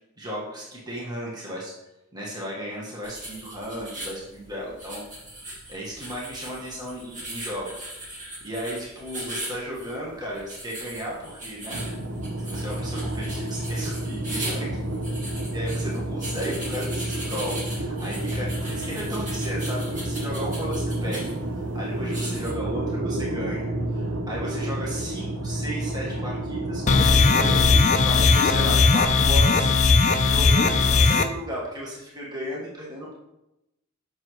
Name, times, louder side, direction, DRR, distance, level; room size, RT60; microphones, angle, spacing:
voice 1, 0.2-1.7 2.1-5.0 5.5-11.8 12.4-14.8 15.5-27.6 28.0-29.8 30.2-33.1, equal, 20° right, -5 dB, 1.4 m, -35 dB
sound 1, 3.0-22.5, right 1 dB, 35° right, 1.8 m, -39 dB
sound 2, 11.7-27.9, right 1 dB, 65° right, 0.8 m, -30 dB
sound 3, 26.9-31.2, left 4 dB, 35° left, 0.5 m, -18 dB
7.4 x 6.1 x 3.1 m, 0.92 s
head